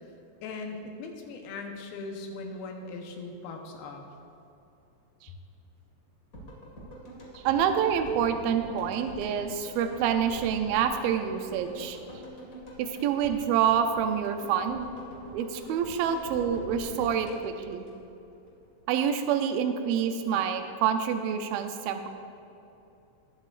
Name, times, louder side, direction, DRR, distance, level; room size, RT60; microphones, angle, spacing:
voice 1, 0.4-4.0, left 3 dB, 80° left, 2 dB, 2.9 m, -39 dB
sound 1, 6.3-18.5 18.8-18.9, equal, 35° left, 1.4 m, -45 dB
voice 2, 7.4-12.0 12.8-14.9 15.3-17.9 18.9-22.1, right 8 dB, 80° right, 7 dB, 2.4 m, -27 dB
20.5 x 7.7 x 2.5 m, 2.8 s
omnidirectional pair, 4.3 m